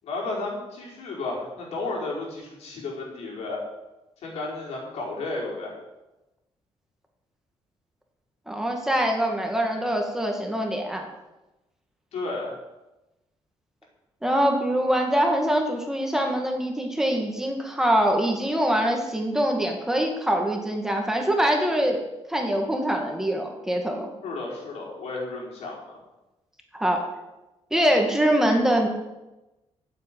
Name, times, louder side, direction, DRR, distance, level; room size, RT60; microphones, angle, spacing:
voice 1, 0.0-3.6 4.2-5.7 12.1-12.6 24.2-26.0, left 2 dB, 80° left, -3 dB, 5.2 m, -33 dB
voice 2, 8.5-11.0 14.2-22.0 22.3-24.1 26.7-27.1 27.7-28.9, equal, 5° right, 2 dB, 2.2 m, -24 dB
9.6 x 8.0 x 9.4 m, 1.0 s
cardioid pair, 130°, 11 cm